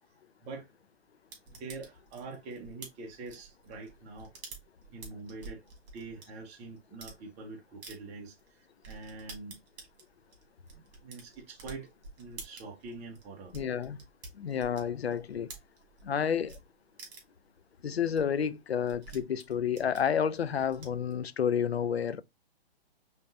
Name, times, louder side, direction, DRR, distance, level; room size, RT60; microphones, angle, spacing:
sound 1, 1.3-6.3 6.8-7.2 7.8-8.0 8.4-8.5 8.8-16.1 16.5-16.6 17.0-17.4 17.8-17.9 18.1-18.2 18.5-21.1, right 4 dB, 40° right, 2.2 m, -49 dB
voice 1, 1.5-4.3 4.9-5.6 5.9-8.4 8.9-9.6 10.7-11.9 12.2-13.5, right 3 dB, 20° right, 1.0 m, -44 dB
voice 2, 13.5-14.0 14.3-15.5 16.0-16.6 17.8-22.2, left 8 dB, 85° left, 0.6 m, -30 dB
5.3 x 3.1 x 2.6 m
hypercardioid pair, 130°, 31 cm